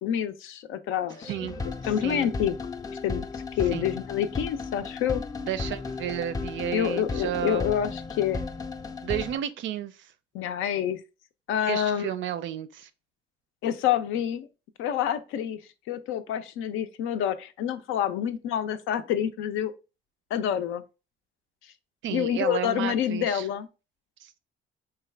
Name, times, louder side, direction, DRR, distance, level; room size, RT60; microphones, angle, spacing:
voice 1, 0.0-1.5 1.9-2.6 3.0-5.2 6.7-8.4 10.3-11.0 11.5-12.1 13.6-14.5 14.8-15.6 15.9-19.7 20.3-20.8 22.1-23.7, left 9 dB, 90° left, 0.4 m, -27 dB
sound 1, 1.1-9.4, left 4 dB, 20° left, 0.4 m, -35 dB
voice 2, 5.4-7.6 9.0-9.9 11.7-12.9 22.0-23.5 24.2-24.4, right 10 dB, 70° right, 0.4 m, -32 dB
3.9 x 2.3 x 3.2 m
cardioid pair, 90°, 20 cm